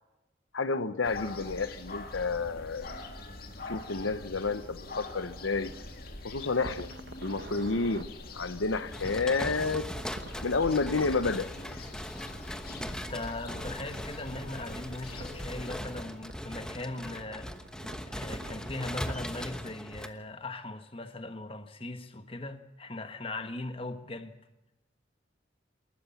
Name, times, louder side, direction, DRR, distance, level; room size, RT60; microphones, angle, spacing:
voice 1, 0.5-2.9 3.7-5.7 6.2-6.9 7.2-8.1 8.3-9.9 10.4-11.5, left 4 dB, 90° left, 0.9 m, -30 dB
sound 1, 1.0-15.8, left 2 dB, 50° left, 2.4 m, -44 dB
sound 2, 6.6-8.1 9.8-10.4 13.1-19.5, right 2 dB, 65° right, 1.2 m, -48 dB
sound 3, 8.9-20.1, equal, 5° left, 1.1 m, -40 dB
voice 2, 12.9-17.5 18.1-24.4, left 2 dB, 30° left, 1.2 m, -39 dB
28.0 x 13.0 x 7.1 m
head